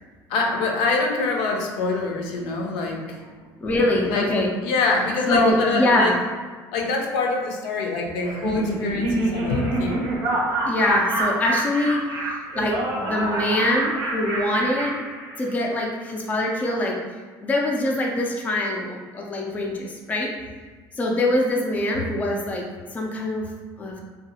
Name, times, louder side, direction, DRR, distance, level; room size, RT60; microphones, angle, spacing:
voice 1, 0.3-3.3 4.1-4.3 4.6-6.1 6.7-10.1, left 3 dB, 80° left, 1 dB, 0.5 m, -25 dB
voice 2, 3.6-4.5 5.3-6.2 10.7-15.0 15.4-17.0 17.4-20.3 20.9-22.7 22.9-23.5 23.8-24.0, left 1 dB, 20° left, -1 dB, 0.4 m, -23 dB
Laughter, 8.2-15.7, right 1 dB, 55° right, 0.7 m, -26 dB
2.6 x 2.3 x 2.7 m, 1.5 s
cardioid pair, 120°, 8 cm